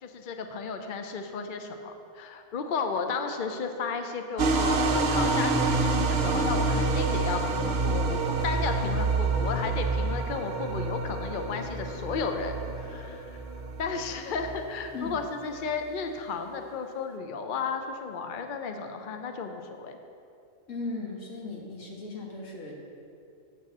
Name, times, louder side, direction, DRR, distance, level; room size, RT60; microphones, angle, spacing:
voice 1, 0.0-13.4 13.8-19.9, left 5 dB, 50° left, 5 dB, 0.6 m, -33 dB
sound 1, 4.4-15.2, right 3 dB, 55° right, 0.8 m, -27 dB
voice 2, 20.7-22.7, left 3 dB, 70° left, -2 dB, 1.9 m, -37 dB
7.3 x 6.5 x 7.2 m, 2.6 s
omnidirectional pair, 1.3 m